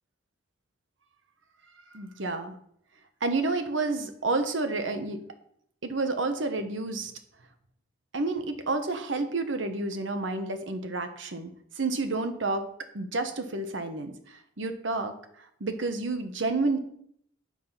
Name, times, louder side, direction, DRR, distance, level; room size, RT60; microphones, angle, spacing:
voice 1, 1.9-2.5 3.2-5.2 5.8-7.1 8.1-11.5 11.8-12.6 12.9-16.8, right 3 dB, 80° right, 7 dB, 1.2 m, -30 dB
7.6 x 6.0 x 5.6 m, 0.68 s
head